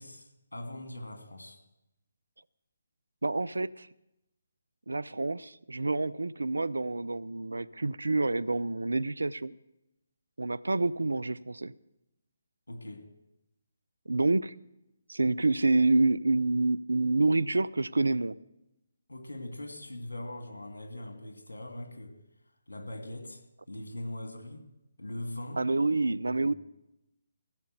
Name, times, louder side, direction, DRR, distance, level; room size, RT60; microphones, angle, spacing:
voice 1, 0.0-1.6 12.7-13.0 19.1-22.1 22.7-23.4 23.7-24.6 25.0-25.6 26.2-26.5, left 1 dB, 70° left, 2.5 m, -41 dB
voice 2, 3.2-3.9 4.9-9.5 10.4-11.7 14.1-14.5 15.1-18.4 25.6-26.5, right 2 dB, 70° right, 0.4 m, -28 dB
15.0 x 6.9 x 7.9 m
figure-of-eight pair, 145°, 0 cm